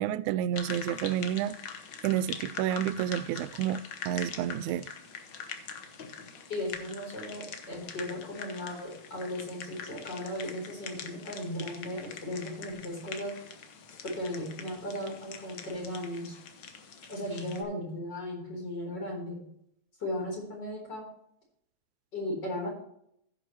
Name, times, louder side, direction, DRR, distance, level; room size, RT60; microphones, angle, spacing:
voice 1, 0.0-1.5 2.0-4.9, right 11 dB, 90° right, 2.0 m, -30 dB
sound 1, 0.6-17.6, left 6 dB, 65° left, 1.1 m, -43 dB
voice 2, 6.5-13.4 14.0-16.3 17.1-19.4 20.0-21.1 22.1-22.7, left 1 dB, 35° left, 4.5 m, -36 dB
15.5 x 6.6 x 3.1 m
omnidirectional pair, 3.3 m